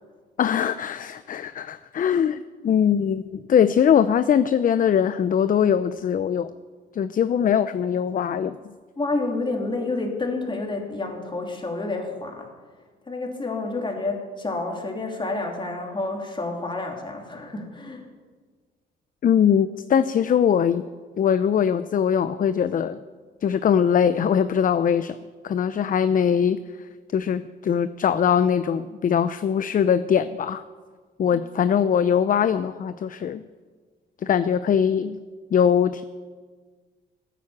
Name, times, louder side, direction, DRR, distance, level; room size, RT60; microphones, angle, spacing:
voice 1, 0.4-6.5 6.9-8.6 19.2-20.8 21.2-23.0 23.4-25.2 25.4-26.6 27.1-30.6 31.2-33.4 34.2-35.2 35.5-36.0, left 8 dB, 45° left, 13 dB, 0.5 m, -21 dB
voice 2, 9.0-12.5 13.1-18.0 31.3-31.4, left 2 dB, 25° left, 2 dB, 3.0 m, -29 dB
14.0 x 9.2 x 7.3 m, 1.5 s
cardioid pair, 90°, 20 cm